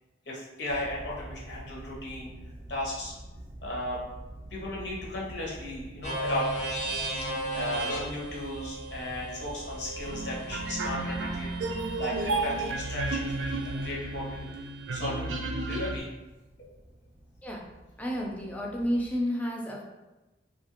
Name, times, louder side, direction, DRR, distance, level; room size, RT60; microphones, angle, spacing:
voice 1, 0.3-2.3 2.7-3.1 3.6-4.0 4.5-6.5 7.5-11.5 12.0-14.5 14.9-15.3 15.6-16.1 16.7-16.8, left 1 dB, 70° left, -4 dB, 0.8 m, -35 dB
sound 1, 0.7-19.2, right 1 dB, 35° right, 0.7 m, -46 dB
sound 2, 6.0-13.9, right 2 dB, 90° left, 1.2 m, -36 dB
sound 3, 10.0-16.0, right 2 dB, 80° right, 0.4 m, -32 dB
voice 2, 18.0-19.8, equal, 10° left, -2 dB, 0.4 m, -31 dB
2.7 x 2.4 x 2.9 m, 1.1 s
head